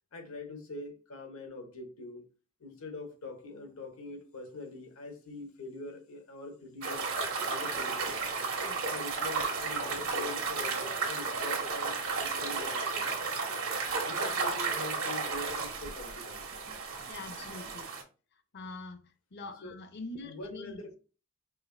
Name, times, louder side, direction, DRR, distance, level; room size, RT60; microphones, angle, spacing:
voice 1, 0.1-2.2 2.6-7.1 7.5-8.2 8.8-13.1 14.0-16.5 19.6-19.8 20.2-21.0, left 2 dB, 80° left, 1.0 m, -44 dB
sound 1, 6.8-18.0, right 4 dB, 90° right, 1.2 m, -33 dB
voice 2, 17.1-17.9 18.5-20.9, left 2 dB, 50° left, 0.6 m, -44 dB
5.0 x 2.6 x 2.6 m
head